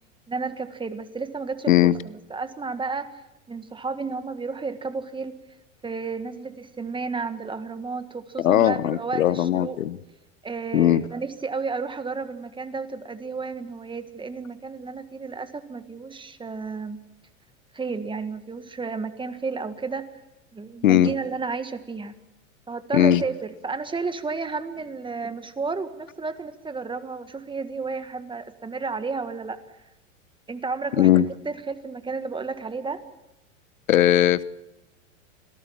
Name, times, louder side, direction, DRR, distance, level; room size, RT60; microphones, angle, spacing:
voice 1, 0.3-3.1 3.5-5.4 5.8-9.8 10.4-17.0 17.7-20.1 20.5-22.2 22.7-29.6 30.5-33.0, right 4 dB, 10° right, 10 dB, 1.7 m, -32 dB
voice 2, 8.4-10.0 10.7-11.0 20.8-21.1 22.9-23.2 31.0-31.3 33.9-34.4, left 12 dB, 80° left, 17 dB, 1.0 m, -19 dB
27.0 x 18.0 x 7.2 m, 0.93 s
hypercardioid pair, 105°, 40 cm